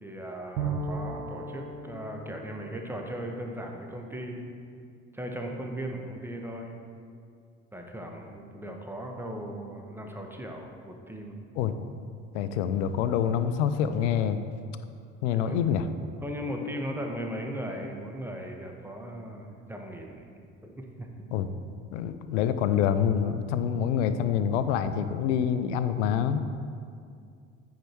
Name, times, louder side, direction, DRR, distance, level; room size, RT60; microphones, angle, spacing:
voice 1, 0.0-4.5 5.1-6.8 7.7-11.4 15.4-15.6 16.2-20.3 20.6-21.1, equal, 5° right, 2 dB, 1.1 m, -37 dB
Bowed string instrument, 0.6-4.3, right 3 dB, 65° right, 1.1 m, -37 dB
voice 2, 12.3-14.4 15.2-15.9 21.3-21.5 21.9-26.4, left 8 dB, 70° left, 11 dB, 0.6 m, -26 dB
9.0 x 4.7 x 4.6 m, 2.3 s
figure-of-eight pair, 60°, 37 cm